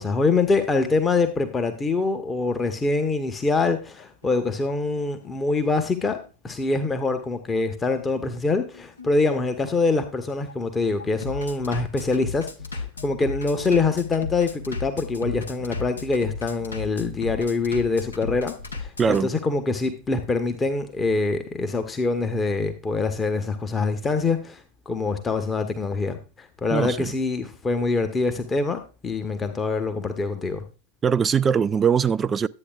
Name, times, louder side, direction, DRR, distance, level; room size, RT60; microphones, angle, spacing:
voice 1, 0.0-6.2 6.4-12.5 12.7-30.6, left 3 dB, 15° left, 0.8 m, -24 dB
Bass drum, 3.2-19.2, left 4 dB, 75° left, 0.9 m, -36 dB
voice 2, 19.0-19.3 26.7-27.1 31.0-32.5, right 7 dB, 20° right, 0.3 m, -21 dB
11.5 x 8.5 x 2.3 m
figure-of-eight pair, 90°, 0 cm